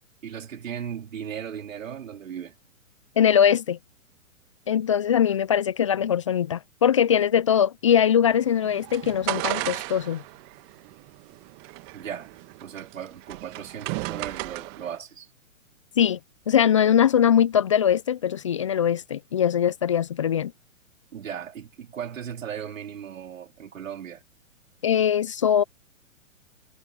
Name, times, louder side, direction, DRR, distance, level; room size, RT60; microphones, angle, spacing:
voice 1, 0.2-2.6 11.9-12.3 12.6-15.3 21.1-24.2, right 8 dB, 70° right, 4.0 m, -37 dB
voice 2, 3.2-3.8 4.7-10.2 16.0-16.2 16.5-20.5 24.8-25.6, left 9 dB, 25° left, 0.3 m, -21 dB
sound 1, 8.3-15.0, right 28 dB, 30° right, 1.5 m, -35 dB
hypercardioid pair, 130°, 41 cm